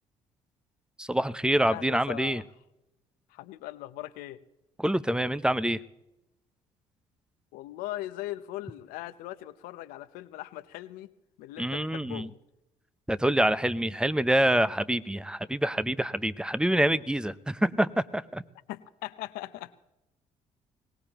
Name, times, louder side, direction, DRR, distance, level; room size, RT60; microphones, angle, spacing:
voice 1, 1.0-2.4 4.8-5.8 11.6-12.3 13.1-18.4, right 1 dB, 5° right, 15 dB, 0.7 m, -26 dB
voice 2, 1.7-2.4 3.3-4.4 7.5-11.1 11.4-12.4 18.7-19.8, left 15 dB, 80° left, 12 dB, 0.8 m, -39 dB
22.0 x 18.5 x 3.0 m, 0.91 s
supercardioid pair, 65°, 15 cm